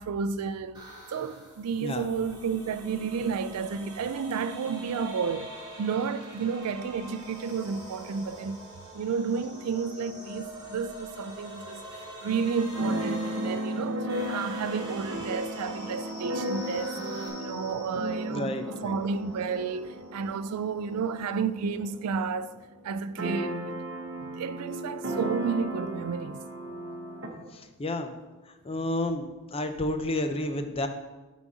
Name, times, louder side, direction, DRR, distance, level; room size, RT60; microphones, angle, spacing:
voice 1, 0.0-8.6 8.9-17.0 17.4-22.5 22.8-23.8 24.2-26.4, right 5 dB, 90° right, 0.4 m, -32 dB
sound 1, 0.7-17.3, right 1 dB, 20° right, 2.3 m, -44 dB
Keyboard (musical), 12.7-22.3 22.5-22.6 22.9-27.3, right 1 dB, 55° right, 1.1 m, -35 dB
sound 2, 15.3-22.4, equal, 10° left, 2.4 m, -50 dB
voice 2, 18.3-19.0 27.5-28.1 28.6-30.9, left 1 dB, 25° left, 0.5 m, -31 dB
7.3 x 4.0 x 6.1 m
head